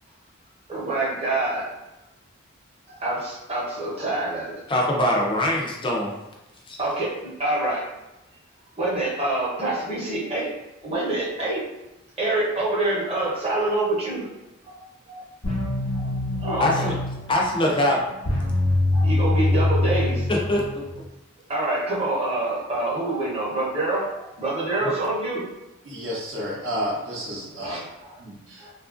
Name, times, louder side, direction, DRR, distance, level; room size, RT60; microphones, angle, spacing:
voice 1, 0.7-1.7 2.9-4.6 6.8-7.9 8.8-10.5 10.8-11.6 12.2-14.3 14.6-14.8 15.1-15.2 15.9-16.1 16.4-16.9 18.5-18.6 18.9-20.3 21.5-25.5 27.6-28.2 28.6-28.7, right 2 dB, 30° right, -6 dB, 0.8 m, -26 dB
voice 2, 4.7-6.1 6.7-6.8 16.6-17.0 17.3-18.0 20.3-20.6, left 1 dB, 25° left, -1 dB, 0.4 m, -22 dB
sound 1, 15.4-21.0, left 2 dB, 85° left, 1.0 m, -24 dB
voice 3, 25.9-27.8 28.2-28.7, equal, 60° right, -5 dB, 0.7 m, -31 dB
2.9 x 2.4 x 2.4 m, 0.99 s
head